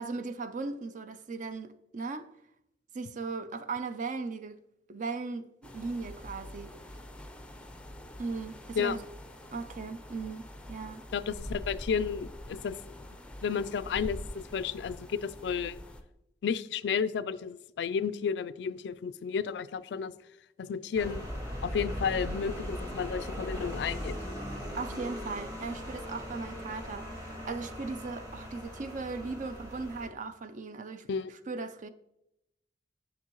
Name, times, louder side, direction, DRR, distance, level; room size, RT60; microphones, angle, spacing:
voice 1, 0.0-2.3 2.9-4.6 4.9-5.5 5.7-6.7 8.2-9.0 9.5-11.0 24.7-31.9, right 4 dB, 45° right, 0.4 m, -38 dB
sound 1, 5.6-16.0, left 1 dB, 5° left, 0.5 m, -45 dB
voice 2, 11.1-12.8 13.4-15.8 16.4-20.1 20.6-21.3 21.6-24.2 31.1-31.3, left 6 dB, 70° left, 0.3 m, -32 dB
sound 2, 20.9-30.1, equal, 20° right, 1.7 m, -39 dB
7.1 x 6.2 x 3.0 m
head